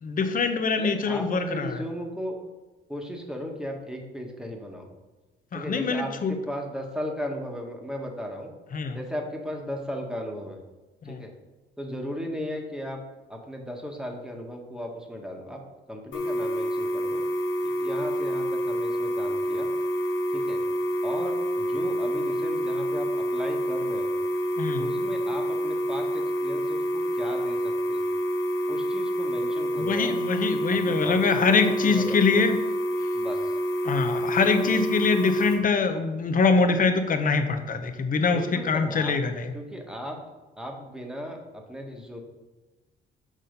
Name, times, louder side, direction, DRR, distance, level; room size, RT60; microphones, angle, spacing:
voice 1, 0.0-1.8 5.5-6.3 8.7-9.0 11.0-11.2 24.6-24.9 29.9-32.6 33.8-39.5, left 4 dB, 45° left, 7 dB, 0.8 m, -24 dB
voice 2, 0.8-2.4 2.9-4.9 5.5-8.5 8.9-10.6 11.0-11.3 11.8-13.0 13.3-15.6 15.9-17.2 17.6-19.7 20.3-20.6 21.0-24.1 24.8-28.0 28.7-30.1 30.9-32.5 33.1-33.6 38.3-39.1 39.5-40.2 40.6-42.2, equal, 5° right, 1 dB, 1.2 m, -36 dB
sound 1, 16.1-35.5, equal, 85° left, 1.8 m, -28 dB
6.2 x 4.1 x 5.2 m, 1.2 s
cardioid pair, 90°, 20 cm